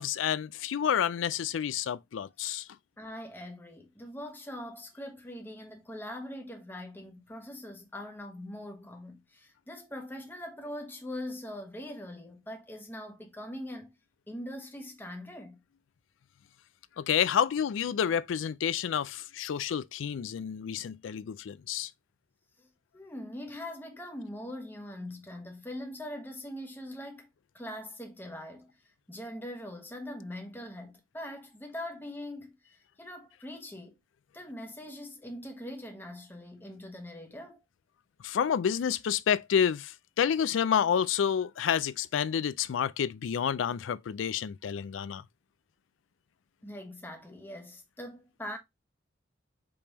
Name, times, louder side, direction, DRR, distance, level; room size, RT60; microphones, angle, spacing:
voice 1, 0.0-2.6 17.0-21.9 38.2-45.2, left 8 dB, 85° left, 0.4 m, -29 dB
voice 2, 3.0-13.9 14.3-15.6 22.6-22.7 22.9-27.3 27.5-28.8 29.1-34.0 34.3-37.6 46.6-48.6, left 1 dB, 10° left, 1.1 m, -42 dB
5.1 x 3.4 x 2.9 m
head